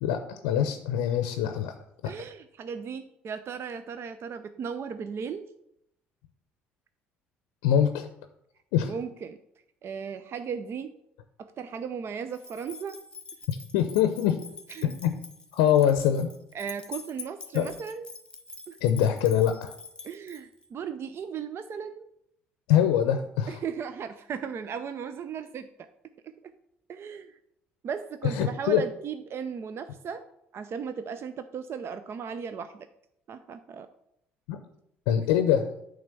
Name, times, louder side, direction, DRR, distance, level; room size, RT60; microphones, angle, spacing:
voice 1, 0.0-1.7 2.0-2.1 7.6-8.1 8.7-8.9 13.5-14.4 14.8-15.1 15.5-16.3 17.5-17.7 18.8-19.7 22.7-23.6 28.2-28.8 34.5-34.6 35.1-35.7, left 9 dB, 75° left, 8 dB, 0.6 m, -24 dB
voice 2, 2.0-5.5 8.8-9.4 9.8-11.0 11.4-13.0 14.7-15.0 16.5-18.1 18.7-18.8 20.0-22.0 23.5-25.9 26.2-26.5 26.9-27.3 27.8-30.2 30.5-32.9 33.3-33.9, right 6 dB, 45° right, 10 dB, 0.5 m, -36 dB
sound 1, 12.3-20.7, left 4 dB, 15° left, 1.3 m, -45 dB
8.9 x 3.5 x 6.8 m, 0.76 s
hypercardioid pair, 55°, 6 cm